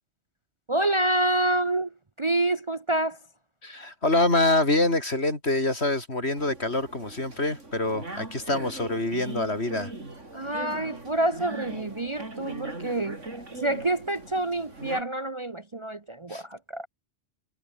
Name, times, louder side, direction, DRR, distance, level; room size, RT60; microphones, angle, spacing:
voice 1, 0.7-1.9 2.2-3.2 10.3-16.9, right 1 dB, 30° right, 0.9 m, -27 dB
voice 2, 3.6-9.9 16.3-16.4, left 2 dB, 60° left, 5.3 m, -25 dB
sound 1, 6.4-15.0, right 2 dB, 90° right, 5.0 m, -40 dB
omnidirectional pair, 1.2 m